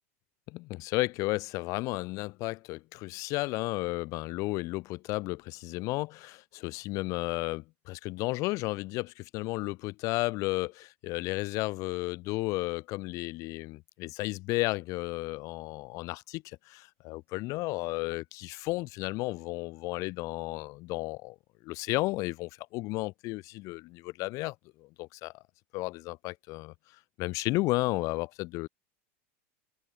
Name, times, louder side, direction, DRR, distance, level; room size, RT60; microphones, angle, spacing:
voice 1, 0.5-21.4 21.6-25.3 25.7-26.7 27.2-28.7, left 22 dB, 45° left, 0.4 m, -33 dB
supercardioid pair, 135°, 8 cm